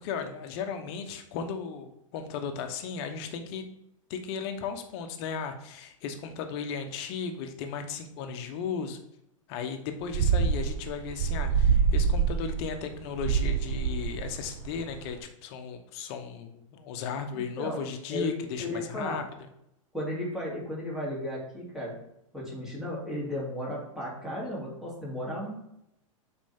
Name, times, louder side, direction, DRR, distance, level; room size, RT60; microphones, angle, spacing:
voice 1, 0.0-3.6 4.1-9.0 9.5-19.5, left 6 dB, 50° left, 7 dB, 1.0 m, -36 dB
sound 1, 10.1-15.1, right 6 dB, 55° right, 0.8 m, -26 dB
voice 2, 17.3-17.8 18.1-18.3 18.6-19.2 19.9-21.9 22.3-25.5, left 1 dB, 5° right, -5 dB, 2.7 m, -34 dB
7.5 x 4.4 x 3.6 m, 0.80 s
hypercardioid pair, 110°, 17 cm